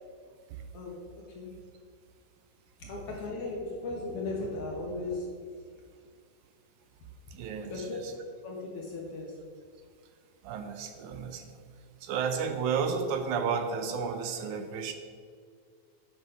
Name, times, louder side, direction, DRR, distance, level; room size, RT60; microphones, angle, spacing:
voice 1, 2.8-5.3 7.7-8.0 8.4-9.3, left 2 dB, 60° left, -1 dB, 1.7 m, -36 dB
voice 2, 7.3-8.1 10.4-11.6 12.0-14.9, right 6 dB, 80° right, 7 dB, 2.0 m, -32 dB
9.0 x 5.9 x 5.5 m, 2.1 s
omnidirectional pair, 3.7 m